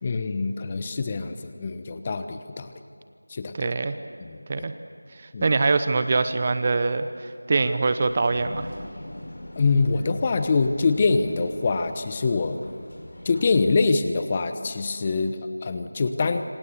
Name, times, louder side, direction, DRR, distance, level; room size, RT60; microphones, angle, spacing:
voice 1, 0.0-2.7 3.3-3.7 4.2-4.6 5.3-5.5 9.5-12.6 13.2-16.4, left 4 dB, 20° left, 9 dB, 1.0 m, -24 dB
voice 2, 3.6-4.0 4.5-4.7 5.1-8.7, right 3 dB, 25° right, 10 dB, 0.8 m, -24 dB
sound 1, 8.0-13.7, left 1 dB, 55° left, 5.7 m, -42 dB
26.5 x 25.0 x 7.0 m, 2.3 s
figure-of-eight pair, 175°, 0 cm